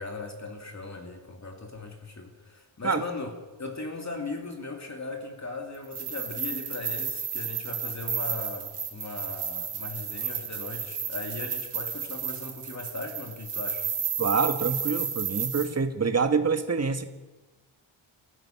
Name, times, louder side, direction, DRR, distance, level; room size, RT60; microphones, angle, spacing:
voice 1, 0.0-3.3 3.6-13.9, left 3 dB, 35° left, 2 dB, 2.7 m, -38 dB
sound 1, 5.8-15.7, right 7 dB, 80° right, 3.5 m, -32 dB
voice 2, 14.2-17.1, right 5 dB, 30° right, 7 dB, 1.5 m, -26 dB
28.5 x 15.5 x 5.9 m, 1.2 s
wide cardioid pair, 120°, 50 cm